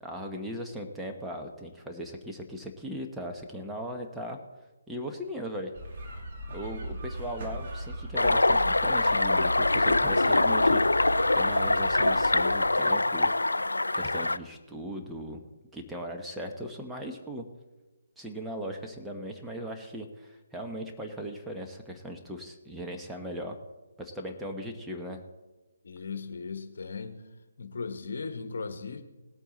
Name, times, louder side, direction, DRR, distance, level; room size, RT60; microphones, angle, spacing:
voice 1, 0.0-4.4 4.9-5.7 6.5-13.3 13.9-15.4 15.7-17.5 18.2-23.6 24.0-25.2, equal, 5° right, 1 dB, 1.1 m, -38 dB
sound 1, 5.7-12.7, right 1 dB, 45° right, 2.5 m, -38 dB
sound 2, 8.2-14.4, left 2 dB, 85° left, 0.4 m, -24 dB
voice 2, 25.8-27.3 27.6-29.0, left 4 dB, 60° left, 9 dB, 1.2 m, -37 dB
19.0 x 8.5 x 4.1 m, 1.1 s
figure-of-eight pair, 145°, 0 cm